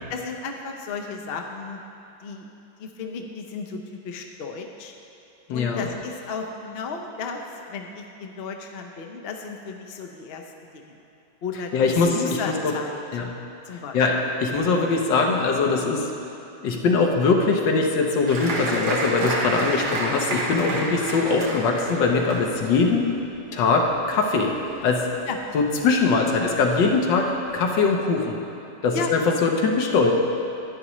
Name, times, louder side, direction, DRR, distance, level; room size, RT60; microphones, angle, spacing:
voice 1, 0.1-1.8 2.2-2.5 2.8-4.9 5.5-7.4 7.7-10.4 10.7-11.0 11.4-13.0 13.6-14.1 20.6-20.8 25.3-25.4 28.9-29.1, left 5 dB, 60° left, 3 dB, 0.6 m, -34 dB
voice 2, 5.5-5.8 11.7-12.7 13.1-13.3 13.9-16.1 16.6-23.1 23.5-24.5 24.8-25.1 25.5-28.4 28.8-30.1, left 4 dB, 85° left, 1 dB, 1.6 m, -22 dB
Applause, 18.3-25.3 25.6-26.3 26.7-26.8 27.1-27.6, right 1 dB, 65° right, 1.9 m, -30 dB
11.0 x 9.6 x 3.0 m, 2.8 s
omnidirectional pair, 1.9 m